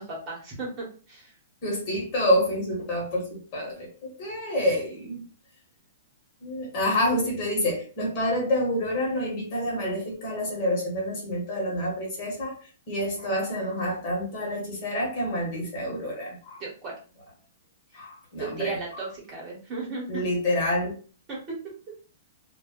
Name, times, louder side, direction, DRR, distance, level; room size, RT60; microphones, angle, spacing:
voice 1, 0.0-1.3 16.6-16.9 18.4-20.2 21.3-21.4, right 3 dB, 25° right, -4 dB, 1.1 m, -35 dB
voice 2, 1.6-5.2 6.4-12.6 12.9-16.6 17.9-19.0 20.1-21.0, left 1 dB, 35° left, -1 dB, 1.1 m, -28 dB
2.2 x 2.1 x 3.6 m, 0.39 s
hypercardioid pair, 165°, 0 cm